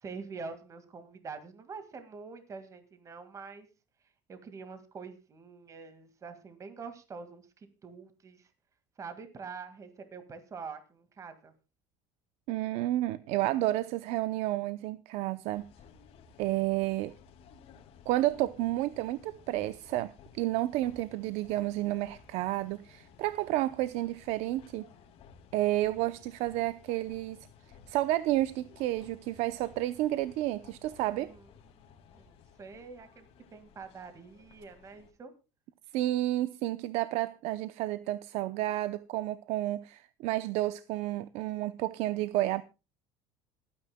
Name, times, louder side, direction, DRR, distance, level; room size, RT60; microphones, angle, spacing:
voice 1, 0.0-3.7 4.3-8.5 9.0-11.5 31.2-31.4 31.7-33.3 33.5-35.3, right 5 dB, 25° right, 1.9 m, -45 dB
voice 2, 12.5-15.7 16.4-17.1 18.1-24.9 25.5-27.5 27.9-31.3 35.9-42.6, right 15 dB, 65° right, 0.7 m, -31 dB
sound 1, 15.5-35.1, left 6 dB, 55° left, 2.3 m, -57 dB
27.0 x 9.5 x 2.2 m
cardioid pair, 135°, 12 cm